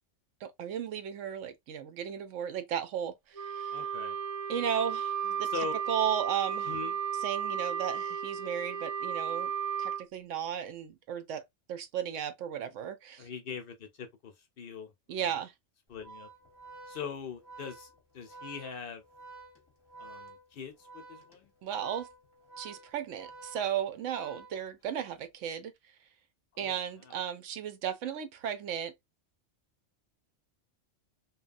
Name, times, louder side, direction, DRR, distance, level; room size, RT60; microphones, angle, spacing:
voice 1, 0.4-3.8 4.5-5.5 5.9-6.7 7.2-9.5 9.8-11.4 11.7-13.3 15.1-15.5 21.6-22.1 22.6-25.7 26.6-28.9, right 9 dB, 90° right, 1.0 m, -35 dB
Wind instrument woodwind instrument, 3.3-10.0, right 8 dB, 55° right, 0.4 m, -34 dB
voice 2, 3.7-4.2 5.5-5.7 6.7-7.0 13.2-14.9 15.2-15.4 15.9-16.3 16.9-19.0 20.0-21.5 26.5-26.8 27.0-27.1, left 6 dB, 60° left, 0.7 m, -42 dB
Organ, 15.9-25.1, right 3 dB, 25° left, 0.7 m, -50 dB
2.8 x 2.2 x 2.4 m
omnidirectional pair, 1.2 m